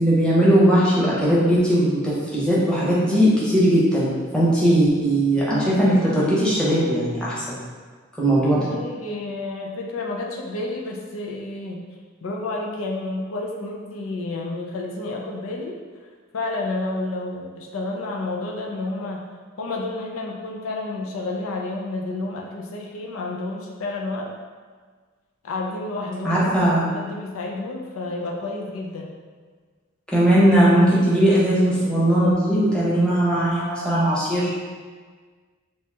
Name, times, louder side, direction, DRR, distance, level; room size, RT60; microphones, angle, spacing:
voice 1, 0.0-7.6 8.2-8.7 26.2-26.9 30.1-34.5, right 1 dB, 5° left, -9 dB, 0.8 m, -19 dB
voice 2, 8.5-11.8 12.2-15.8 16.3-19.2 19.6-24.3 25.4-29.1, left 2 dB, 85° left, -1 dB, 0.5 m, -30 dB
3.0 x 2.7 x 3.4 m, 1.5 s
head